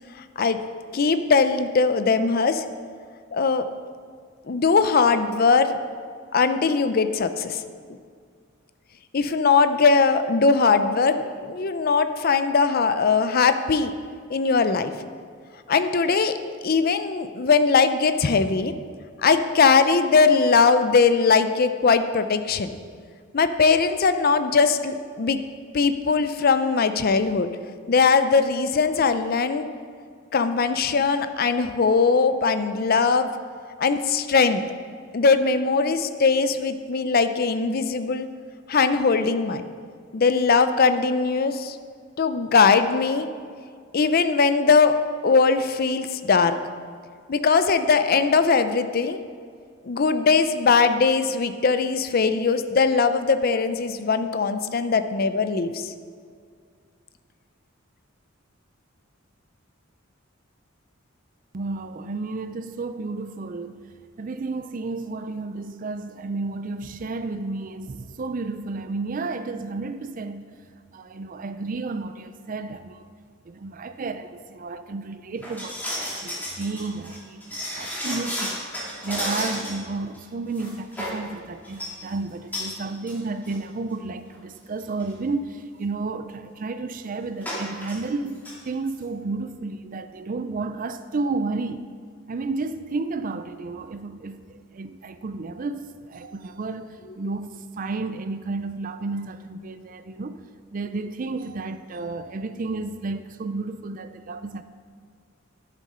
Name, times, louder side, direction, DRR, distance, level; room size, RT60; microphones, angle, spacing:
voice 1, 0.9-2.6 3.3-3.7 4.5-5.8 6.3-7.6 9.1-13.9 14.3-14.9 15.7-16.3 16.6-18.7 19.2-22.7 23.3-25.4 25.7-27.5 27.9-29.7 30.3-33.3 33.8-34.6 35.1-38.3 38.7-39.6 40.1-41.8 42.2-43.3 43.9-46.6 47.3-49.2 49.8-55.9, left 4 dB, 50° left, 0.5 m, -20 dB
voice 2, 61.5-63.9 64.2-70.5 70.9-73.0 73.4-78.7 79.0-91.9 92.3-100.4 100.7-104.6, right 3 dB, 40° right, 0.4 m, -32 dB
sound 1, 75.4-79.9 80.1-80.2 80.6-81.2 81.6-81.9 82.5-82.7 83.1-83.2 83.5-83.6 84.3-84.4 84.8-85.0 87.4-88.0 88.3-88.5 88.9-89.0, left 1 dB, 10° left, 2.5 m, -32 dB
11.5 x 7.5 x 5.5 m
head